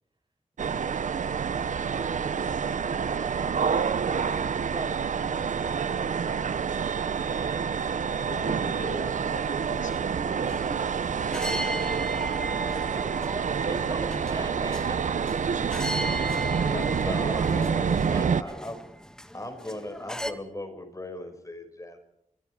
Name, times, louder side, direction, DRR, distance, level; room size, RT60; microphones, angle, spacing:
sound 1, 0.6-18.4, right 6 dB, 80° right, 0.8 m, -28 dB
voice 1, 0.7-1.3 1.6-1.7 8.3-10.9, left 4 dB, 85° left, 5 dB, 4.4 m, -43 dB
voice 2, 1.8-6.6 12.2-18.7, right 2 dB, 35° right, 6 dB, 7.3 m, -42 dB
sound 2, 10.3-20.3, equal, 5° left, 2.2 m, -37 dB
voice 3, 16.6-18.8 19.3-22.0, left 1 dB, 25° left, 7 dB, 6.4 m, -38 dB
29.0 x 25.0 x 4.9 m, 0.79 s
wide cardioid pair, 70°, 13 cm